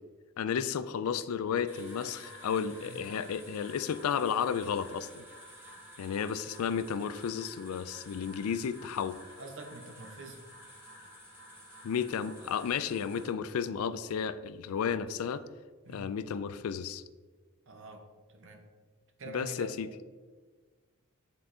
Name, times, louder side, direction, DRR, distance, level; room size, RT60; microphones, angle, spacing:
voice 1, 0.4-5.2 6.0-9.2 11.8-15.4 15.9-17.0 19.3-19.9, left 7 dB, 75° left, 13 dB, 0.4 m, -33 dB
sound 1, 1.7-13.3, equal, 10° right, 1.7 m, -51 dB
voice 2, 9.4-10.4 15.8-16.1 17.7-18.1 18.3-18.6 19.2-19.7, right 2 dB, 60° right, 4 dB, 0.9 m, -45 dB
8.1 x 3.8 x 3.7 m, 1.4 s
head